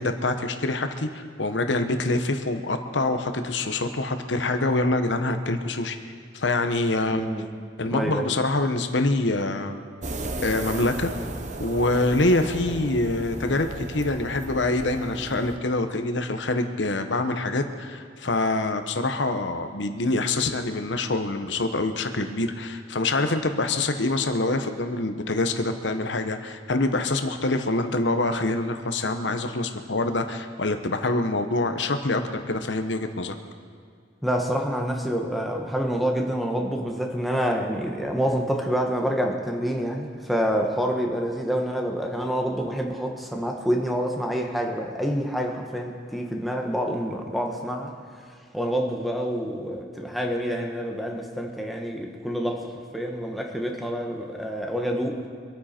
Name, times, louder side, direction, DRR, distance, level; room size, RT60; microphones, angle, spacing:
voice 1, 0.0-6.0 6.3-7.3 7.8-9.8 10.4-11.1 11.6-33.3, left 2 dB, 80° left, 7 dB, 1.1 m, -25 dB
voice 2, 7.0-7.5 7.9-8.3 34.2-47.9 48.5-55.2, equal, ahead, 1 dB, 1.4 m, -27 dB
sound 1, 10.0-15.6, right 2 dB, 40° right, 0.9 m, -35 dB
25.0 x 9.4 x 4.4 m, 2.2 s
head